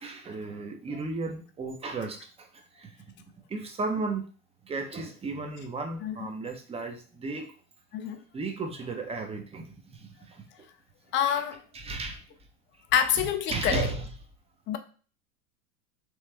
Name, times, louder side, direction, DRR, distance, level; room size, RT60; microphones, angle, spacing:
voice 1, 0.0-2.9 3.5-4.2 4.6-7.5 8.3-10.4 11.3-11.4 11.7-12.2 13.2-14.1, right 3 dB, 15° right, 0.6 m, -35 dB
voice 2, 11.1-11.6 12.9-13.9 14.7-14.8, left 9 dB, 25° left, 0.4 m, -26 dB
3.2 x 3.1 x 3.3 m
hypercardioid pair, 100°, 45 cm